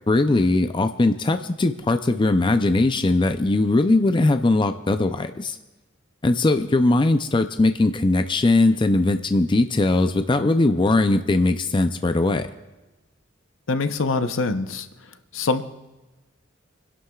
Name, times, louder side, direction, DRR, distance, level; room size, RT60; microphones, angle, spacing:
voice 1, 0.1-5.6 6.2-12.5, left 2 dB, 25° left, 8 dB, 0.5 m, -20 dB
voice 2, 13.7-14.9 15.3-15.6, left 3 dB, 80° left, 9 dB, 0.8 m, -24 dB
27.5 x 11.5 x 2.4 m, 1.1 s
head